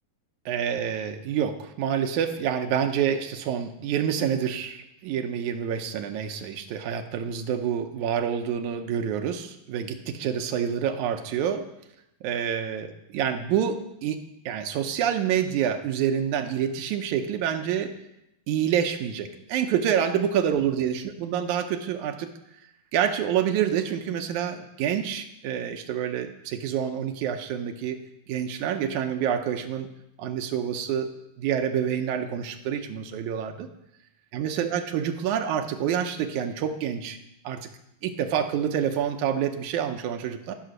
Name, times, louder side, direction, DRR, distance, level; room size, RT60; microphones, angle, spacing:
voice 1, 0.5-11.6 12.2-14.2 14.5-17.9 18.5-22.3 22.9-29.9 30.2-31.1 31.4-33.7 34.3-37.2 37.4-37.7 38.0-40.5, right 8 dB, 75° right, 5 dB, 1.8 m, -27 dB
14.5 x 4.9 x 6.5 m, 0.84 s
omnidirectional pair, 4.2 m